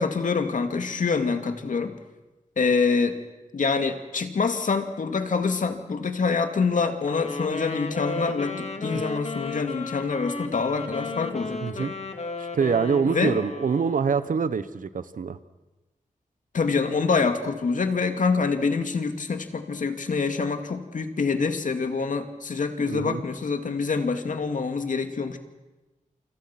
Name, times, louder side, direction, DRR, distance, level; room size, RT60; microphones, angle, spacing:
voice 1, 0.0-1.9 2.6-3.2 3.5-11.9 13.1-13.4 16.5-25.4, left 4 dB, 75° left, 7 dB, 2.3 m, -26 dB
Wind instrument woodwind instrument, 7.0-14.2, left 3 dB, 55° left, 2.7 m, -34 dB
voice 2, 11.6-11.9 12.5-15.4 22.9-23.2, right 6 dB, 85° right, 14 dB, 1.1 m, -25 dB
28.0 x 26.0 x 6.0 m, 1.1 s
wide cardioid pair, 90°, 13 cm